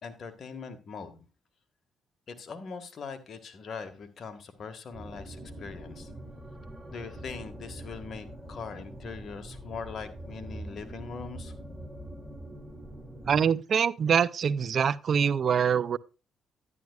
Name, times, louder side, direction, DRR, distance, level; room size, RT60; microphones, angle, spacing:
voice 1, 0.0-1.2 2.3-6.1 6.9-11.5, left 5 dB, 50° left, 1.7 m, -41 dB
sound 1, 4.9-13.4, right 1 dB, 5° right, 1.7 m, -44 dB
voice 2, 13.3-16.0, right 7 dB, 55° right, 0.4 m, -24 dB
11.0 x 10.5 x 2.4 m
cardioid pair, 90°, 0 cm